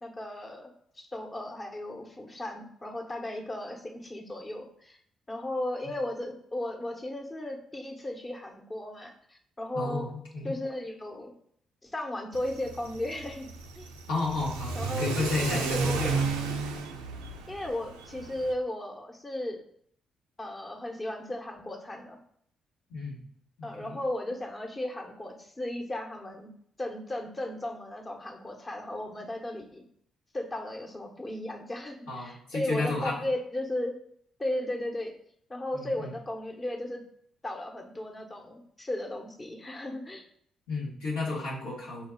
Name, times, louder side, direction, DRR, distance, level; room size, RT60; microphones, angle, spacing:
voice 1, 0.0-5.0 5.3-10.0 10.4-11.3 11.8-13.5 13.7-13.9 14.7-15.2 15.5-16.2 17.5-19.6 20.4-22.2 23.6-26.5 26.8-29.8 30.3-34.0 34.4-35.1 35.5-37.0 37.4-40.2, left 1 dB, 30° left, 1 dB, 1.0 m, -35 dB
voice 2, 9.7-10.5 14.1-16.3 22.9-23.2 23.8-24.0 32.1-33.3 35.7-36.1 40.7-42.1, left 3 dB, 80° left, -5 dB, 1.2 m, -32 dB
Car / Accelerating revving vroom, 12.3-18.5, right 5 dB, 85° right, 0.3 m, -33 dB
4.3 x 2.3 x 3.7 m, 0.65 s
hypercardioid pair, 45°, 0 cm